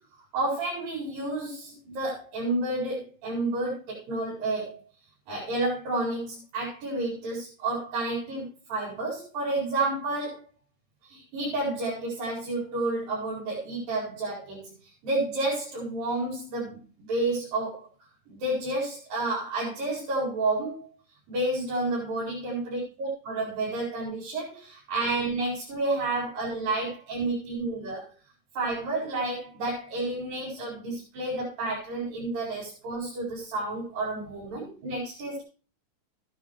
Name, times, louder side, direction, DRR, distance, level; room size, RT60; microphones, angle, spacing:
voice 1, 0.3-4.8 5.3-10.4 11.0-14.7 15.0-16.8 17.1-17.9 18.3-20.9 21.3-28.0 28.5-35.4, right 2 dB, 75° right, -6 dB, 6.6 m, -30 dB
14.0 x 11.5 x 3.2 m, 0.37 s
omnidirectional pair, 4.1 m